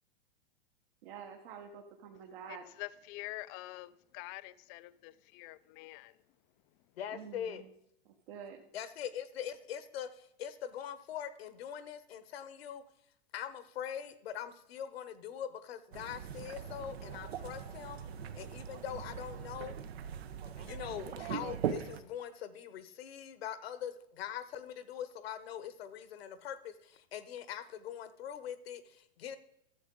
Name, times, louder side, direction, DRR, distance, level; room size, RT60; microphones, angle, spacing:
voice 1, 1.0-2.7 7.1-7.7 8.3-8.6, right 7 dB, 60° right, 1.2 m, -48 dB
voice 2, 2.5-6.2, left 19 dB, 35° left, 0.4 m, -46 dB
voice 3, 7.0-7.6 8.7-12.8 13.3-18.0 18.3-19.8 20.6-29.4, left 9 dB, 70° left, 1.1 m, -42 dB
sound 1, 15.9-22.0, right 8 dB, 75° right, 0.9 m, -41 dB
13.0 x 7.4 x 3.8 m
hypercardioid pair, 110°, 31 cm